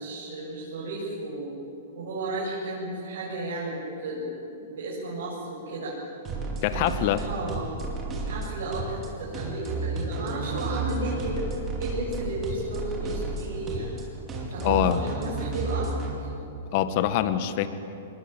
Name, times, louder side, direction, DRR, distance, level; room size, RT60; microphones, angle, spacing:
voice 1, 0.0-1.5 1.9-5.9 6.7-7.8 8.2-11.4 11.8-14.0 14.5-15.9 16.2-16.3, right 2 dB, 70° right, -6 dB, 7.9 m, -33 dB
sound 1, 6.2-16.1, right 3 dB, 25° right, 4.8 m, -32 dB
voice 2, 6.6-7.2 14.6-15.0 16.7-17.7, left 12 dB, 50° left, 11 dB, 1.6 m, -24 dB
22.0 x 21.5 x 9.3 m, 2.9 s
hypercardioid pair, 125°, 0 cm